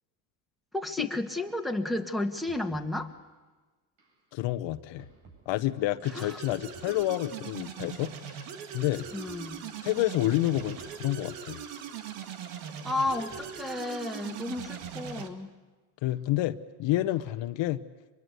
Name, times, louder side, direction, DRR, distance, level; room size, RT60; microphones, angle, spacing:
voice 1, 0.7-3.1 6.1-6.4 9.1-9.6 12.8-15.5, left 2 dB, ahead, 3 dB, 1.8 m, -32 dB
sound 1, 1.5-1.6 2.0-2.2 2.5-3.2 4.0-4.2 5.0-5.5 6.0-7.4 8.0-8.2 9.0-9.6 10.0-10.2 10.5-11.4 12.0-12.3 13.0-13.6 14.1-15.4 16.1-16.2 17.1-17.5, right 4 dB, 65° right, 7.8 m, -55 dB
voice 2, 4.3-5.1 5.5-8.4 8.7-9.1 9.8-11.6 16.0-17.8, left 15 dB, 65° left, 11 dB, 1.0 m, -29 dB
sound 2, 6.0-15.3, right 7 dB, 80° right, 2.2 m, -41 dB
24.5 x 22.0 x 8.2 m, 1.3 s
supercardioid pair, 100°, 48 cm